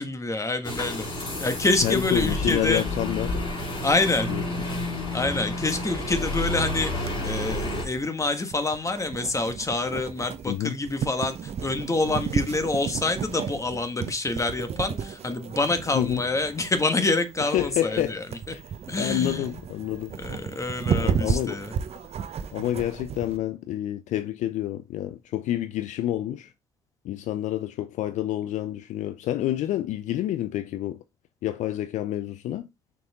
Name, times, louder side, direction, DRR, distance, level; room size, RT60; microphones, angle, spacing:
voice 1, 0.0-2.8 3.8-4.3 5.1-18.5 18.9-19.6 20.2-21.7, left 2 dB, 20° left, 1.6 m, -27 dB
sound 1, 0.6-7.9, left 1 dB, 40° left, 3.5 m, -30 dB
voice 2, 1.8-3.3 4.3-4.4 10.5-10.7 15.9-16.2 17.5-18.2 18.5-18.6 19.0-20.1 21.0-21.6 22.5-26.5 27.0-31.0 31.4-32.7, left 13 dB, 60° left, 0.5 m, -28 dB
sound 2, 7.1-23.4, right 7 dB, 50° right, 0.9 m, -33 dB
6.2 x 4.7 x 3.6 m
hypercardioid pair, 50°, 14 cm